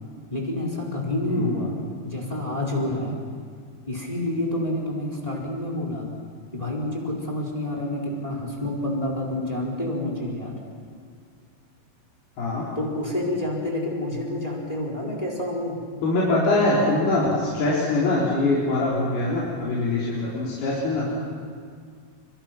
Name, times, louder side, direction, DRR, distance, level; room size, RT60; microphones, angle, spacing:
voice 1, 0.3-1.8 2.0-3.2 3.9-6.1 6.5-10.6 12.7-15.8, left 1 dB, 10° left, -1 dB, 4.1 m, -28 dB
voice 2, 16.0-21.1, left 2 dB, 60° left, -7 dB, 5.9 m, -23 dB
29.5 x 25.5 x 6.0 m, 2.1 s
omnidirectional pair, 5.1 m